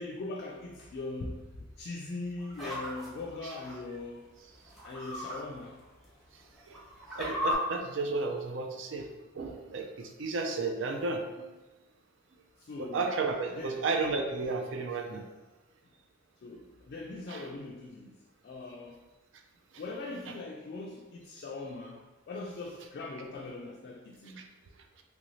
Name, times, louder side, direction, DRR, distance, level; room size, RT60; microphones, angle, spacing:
voice 1, 0.0-4.4 4.8-5.8 12.6-13.0 13.5-13.9 16.4-18.2 18.4-19.0 19.8-22.0 22.3-24.4, left 2 dB, 50° left, -1 dB, 0.3 m, -41 dB
sound 1, 2.4-3.7 4.7-5.4 5.8-5.9 6.6-7.5, left 1 dB, ahead, 0.7 m, -35 dB
voice 2, 7.2-9.1 9.4-11.5 12.8-15.2 17.3-17.4, right 3 dB, 65° right, 3 dB, 0.4 m, -33 dB
3.1 x 2.6 x 3.0 m, 1.2 s
head